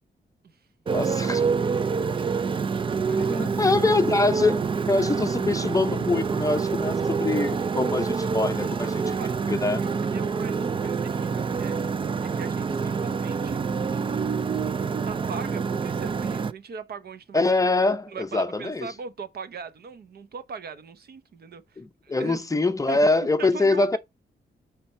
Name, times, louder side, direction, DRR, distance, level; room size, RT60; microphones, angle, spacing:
voice 1, 0.9-1.5 3.2-4.6 4.9-9.2 9.5-9.8 17.3-18.9 21.8-24.0, left 3 dB, 20° left, 0.6 m, -24 dB
Motorcycle, 0.9-16.5, right 5 dB, 30° right, 0.4 m, -27 dB
voice 2, 3.0-4.0 8.6-8.7 9.0-9.3 9.8-11.8 12.2-13.6 15.0-17.4 18.1-22.4 22.9-24.0, right 5 dB, 60° right, 0.9 m, -40 dB
8.3 x 3.5 x 4.4 m
wide cardioid pair, 155°, 19 cm